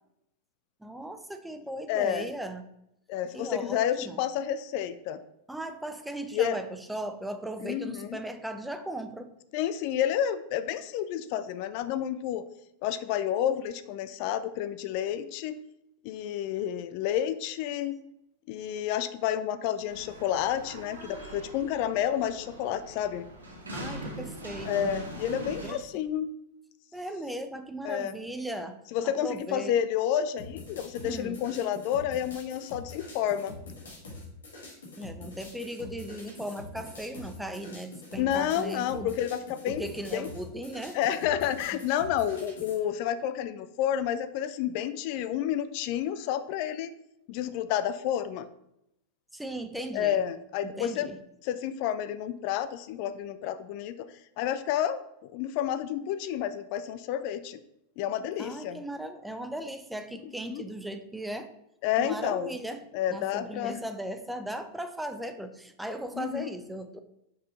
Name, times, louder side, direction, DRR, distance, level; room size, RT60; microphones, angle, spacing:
voice 1, 0.8-2.7 3.3-4.2 5.5-9.3 23.7-25.1 25.6-25.8 26.9-29.7 31.0-31.4 35.0-39.1 39.7-41.0 41.7-41.8 49.3-50.2 50.6-51.2 58.2-61.5 62.0-67.0, right 1 dB, 5° right, 8 dB, 0.6 m, -37 dB
voice 2, 1.9-2.3 3.1-5.2 6.3-6.6 7.6-8.2 9.5-12.4 12.8-15.6 16.0-17.9 18.5-23.3 24.7-26.3 27.8-28.2 28.9-33.6 38.2-39.8 40.1-40.3 40.9-46.9 47.3-48.5 49.9-51.1 51.4-54.1 54.4-55.0 55.3-57.6 58.0-58.8 60.5-60.6 61.8-62.6 62.9-63.8 66.1-66.5, left 10 dB, 45° left, 13 dB, 0.4 m, -30 dB
sound 1, 19.9-25.7, right 1 dB, 75° right, 1.6 m, -41 dB
sound 2, 30.4-42.8, left 2 dB, 65° left, 2.0 m, -45 dB
5.5 x 5.1 x 4.1 m, 0.81 s
figure-of-eight pair, 90°, 0 cm